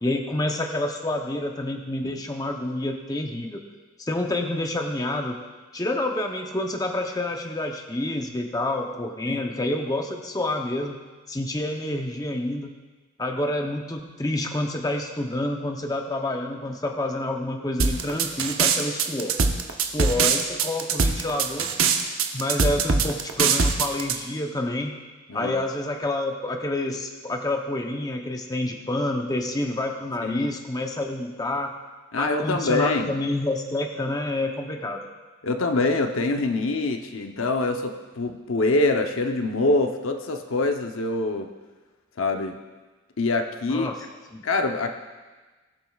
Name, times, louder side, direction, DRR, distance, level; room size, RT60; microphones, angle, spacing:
voice 1, 0.0-3.6 4.0-5.4 5.7-11.0 11.3-12.7 13.2-19.4 19.8-21.7 22.3-24.9 25.3-31.7 32.2-35.1 43.7-44.0 44.3-44.4, left 1 dB, 20° left, 3 dB, 0.7 m, -28 dB
sound 1, 17.8-24.1, right 5 dB, 80° right, 0.8 m, -22 dB
voice 2, 32.1-33.1 35.4-41.5 42.2-42.6 43.2-43.9 44.4-44.9, left 2 dB, 75° left, 5 dB, 0.8 m, -25 dB
21.0 x 7.7 x 2.4 m, 1.3 s
head